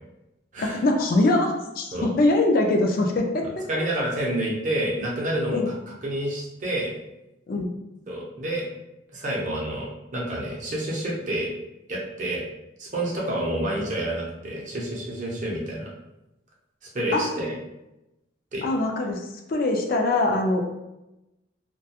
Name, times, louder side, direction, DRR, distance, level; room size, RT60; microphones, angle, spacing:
voice 1, 0.6-3.6 5.5-5.7 7.5-7.7 17.1-17.2 18.6-19.2 19.5-20.7, left 2 dB, 50° left, 2 dB, 0.4 m, -23 dB
voice 2, 3.7-5.7 6.0-6.9 8.1-8.6 9.1-11.5 11.9-12.4 12.8-15.9 16.9-17.5 18.5-18.6, right 1 dB, 40° right, -2 dB, 0.6 m, -28 dB
2.3 x 2.2 x 2.8 m, 0.94 s
head